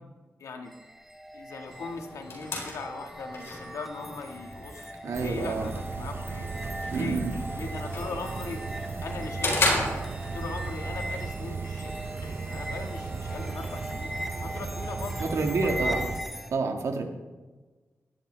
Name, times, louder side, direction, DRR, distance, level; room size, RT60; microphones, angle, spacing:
voice 1, 0.4-0.7 1.3-6.5 6.9-7.2 7.5-8.6 9.0-9.8 10.3-11.9 12.2-14.1 14.4-16.0, left 4 dB, 90° left, 4 dB, 1.7 m, -39 dB
sound 1, 0.7-16.5, equal, ahead, 1.0 m, -39 dB
sound 2, 1.7-10.7, left 2 dB, 55° left, 4.2 m, -35 dB
voice 2, 5.0-5.7 6.9-7.4 15.2-16.1 16.5-17.0, right 3 dB, 75° right, 3 dB, 1.8 m, -28 dB
sound 3, 5.1-16.2, right 4 dB, 45° right, 0.8 m, -36 dB
17.0 x 12.5 x 3.4 m, 1.3 s
wide cardioid pair, 110°, 5 cm